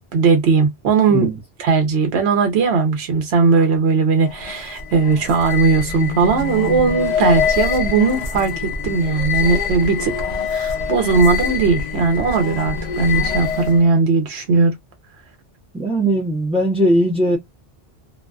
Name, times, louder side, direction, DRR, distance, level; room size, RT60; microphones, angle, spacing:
voice 1, 0.1-1.3 1.6-10.1 10.5-14.8, right 4 dB, 80° right, 0.9 m, -18 dB
sound 1, 4.2-13.9, left 6 dB, 50° left, 0.6 m, -24 dB
voice 2, 15.7-17.4, right 1 dB, 10° right, 0.5 m, -19 dB
2.5 x 2.2 x 2.3 m
omnidirectional pair, 1.1 m